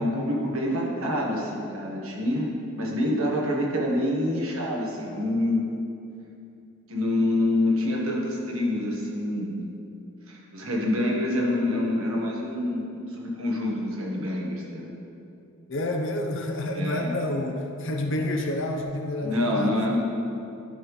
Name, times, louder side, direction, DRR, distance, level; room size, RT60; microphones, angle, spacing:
voice 1, 0.0-2.5 2.7-5.6 6.9-9.6 10.3-14.9 16.7-17.2 19.2-20.0, left 1 dB, 65° right, -3 dB, 1.4 m, -26 dB
voice 2, 15.7-19.8, left 1 dB, 55° left, 3 dB, 0.7 m, -29 dB
11.5 x 5.4 x 3.2 m, 2.7 s
head